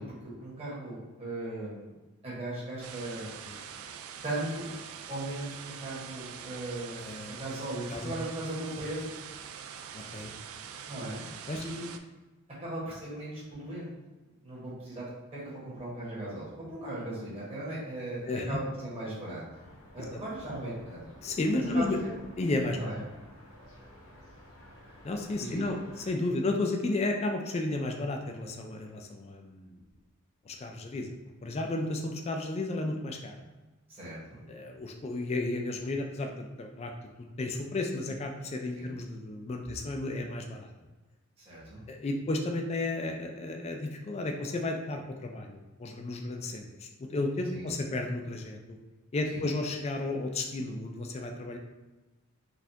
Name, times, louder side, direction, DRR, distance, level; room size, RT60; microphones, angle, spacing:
voice 1, 0.0-1.9 2.2-3.3 4.2-4.7 5.1-9.0 10.8-11.2 11.6-11.9 12.6-13.9 14.4-15.1 15.3-19.4 19.9-21.0 21.6-22.1 22.7-23.0 25.4-25.7 33.9-34.4 38.7-39.0 41.4-41.8 47.5-47.7 49.3-49.4, right 1 dB, 30° right, -8 dB, 1.4 m, -38 dB
sound 1, 2.8-12.0, right 8 dB, 75° right, 0.3 m, -44 dB
voice 2, 6.9-7.3 7.9-8.2 10.1-10.3 11.5-11.6 18.3-18.6 20.0-20.1 21.2-22.0 22.4-22.8 25.0-25.8 26.1-29.8 30.5-31.2 31.4-33.4 34.5-36.9 37.2-40.7 41.9-48.8 49.1-51.6, left 2 dB, 30° left, 3 dB, 0.3 m, -33 dB
sound 2, 19.5-26.1, equal, 80° left, 1.1 m, -53 dB
4.1 x 2.4 x 2.7 m, 1.2 s
head